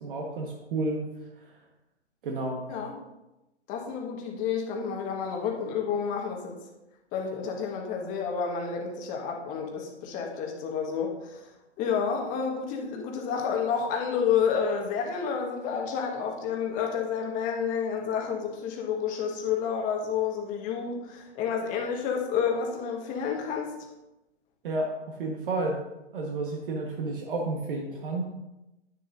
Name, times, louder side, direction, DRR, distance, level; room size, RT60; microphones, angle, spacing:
voice 1, 0.0-1.0 2.2-2.6 24.6-25.8 26.1-28.3, right 2 dB, 50° right, 0 dB, 1.5 m, -31 dB
voice 2, 3.7-6.6 7.1-11.4 11.8-23.7, left 6 dB, 20° left, 1 dB, 1.5 m, -30 dB
9.8 x 9.4 x 2.7 m, 0.95 s
hypercardioid pair, 135°, 35 cm